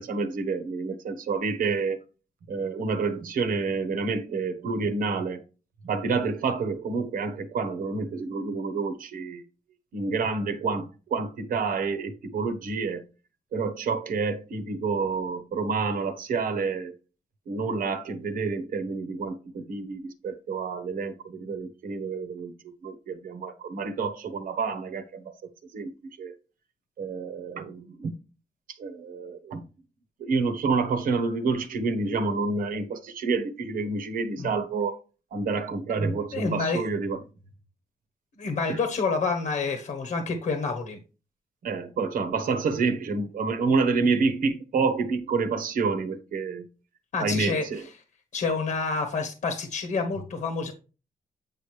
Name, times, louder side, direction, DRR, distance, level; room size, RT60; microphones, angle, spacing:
voice 1, 0.0-2.0 2.5-5.4 5.8-9.4 9.9-13.0 13.5-17.0 17.5-22.5 22.8-25.3 25.7-25.9 26.2-26.3 27.0-28.2 28.7-29.6 30.2-35.0 35.3-37.2 38.7-38.8 41.6-46.7 47.2-47.8, right 4 dB, 75° right, 1.1 m, -28 dB
voice 2, 36.3-36.8 38.4-41.0 47.1-47.9 48.3-50.7, left 4 dB, 65° left, 1.2 m, -28 dB
9.1 x 5.0 x 3.2 m
cardioid pair, 115°, 14 cm